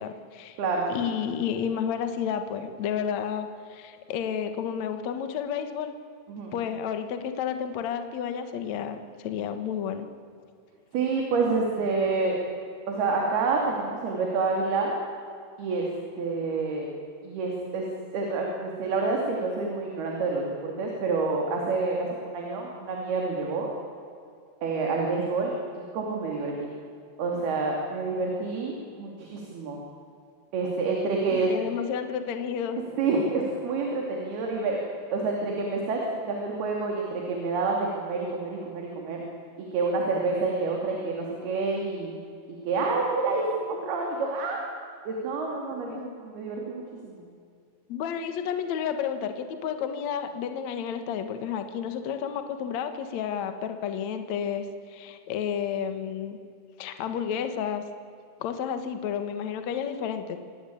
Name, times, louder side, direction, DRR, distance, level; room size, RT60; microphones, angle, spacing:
voice 1, 0.0-0.6 0.9-5.9 6.5-10.1 31.3-32.8 45.9-46.1 47.9-56.4 56.8-57.8 58.4-60.4, left 8 dB, 65° left, 8 dB, 1.8 m, -31 dB
voice 2, 0.6-0.9 6.3-6.6 10.9-12.4 12.9-14.9 15.6-15.9 16.2-16.9 17.2-17.9 18.1-23.7 24.6-26.7 27.2-29.8 30.5-31.5 33.0-34.8 35.1-39.2 39.6-42.1 42.6-44.6 45.1-47.2, right 3 dB, 60° right, 0 dB, 4.5 m, -28 dB
26.0 x 18.5 x 8.7 m, 2.4 s
omnidirectional pair, 5.5 m